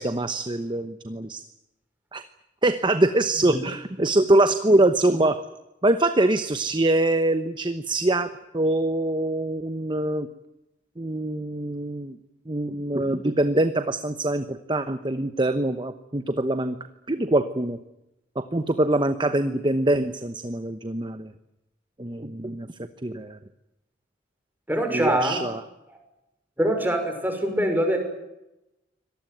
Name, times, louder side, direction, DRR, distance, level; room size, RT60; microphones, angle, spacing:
voice 1, 0.0-1.4 2.1-2.2 2.6-5.4 5.8-10.3 11.0-12.2 12.5-16.8 17.1-17.8 18.4-21.3 22.0-22.7 23.0-23.4 24.9-25.6, right 1 dB, 25° right, 10 dB, 1.0 m, -24 dB
voice 2, 24.7-25.4 26.6-28.0, right 1 dB, 10° right, 4 dB, 5.8 m, -23 dB
25.0 x 19.0 x 9.3 m, 0.93 s
head